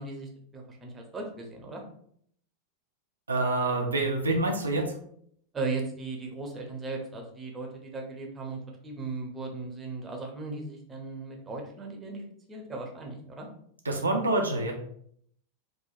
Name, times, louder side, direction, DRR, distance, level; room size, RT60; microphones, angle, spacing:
voice 1, 0.0-1.8 5.5-12.2 12.5-13.5, right 3 dB, 15° right, 0 dB, 0.6 m, -37 dB
voice 2, 3.3-4.9 13.8-14.7, right 2 dB, 75° right, 1 dB, 0.4 m, -26 dB
3.0 x 2.1 x 2.4 m, 0.65 s
figure-of-eight pair, 90°, 0 cm